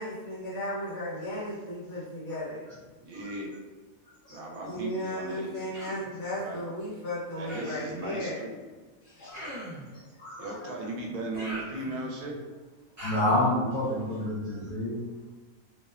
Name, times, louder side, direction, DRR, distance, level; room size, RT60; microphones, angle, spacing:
voice 1, 0.0-2.7 4.6-8.5 9.0-9.4, equal, 60° left, -8 dB, 1.3 m, -35 dB
voice 2, 3.0-3.5 4.3-5.6 6.4-6.6 7.4-8.6 10.4-12.3, right 2 dB, 75° right, -1 dB, 1.0 m, -37 dB
voice 3, 4.2-4.6 9.2-9.5 9.9-10.5 13.0-15.0, left 1 dB, 85° left, -7 dB, 0.4 m, -29 dB
Human voice, 5.7-6.1 7.5-7.9 9.3-9.9 11.3-12.2 13.0-13.5, right 1 dB, 25° right, 0.4 m, -41 dB
2.8 x 2.1 x 2.3 m, 1.3 s
omnidirectional pair, 1.5 m